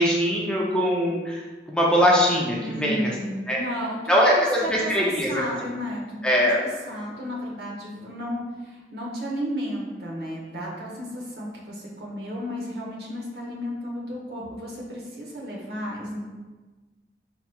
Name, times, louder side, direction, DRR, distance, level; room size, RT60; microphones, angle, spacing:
voice 1, 0.0-1.4 1.7-3.1 3.5-3.6 4.1-5.4 6.2-6.6, equal, 5° left, -4 dB, 0.4 m, -21 dB
voice 2, 2.6-4.9 5.3-6.5 6.9-16.2, equal, 65° right, -3 dB, 0.8 m, -33 dB
4.5 x 2.8 x 2.2 m, 1.3 s
head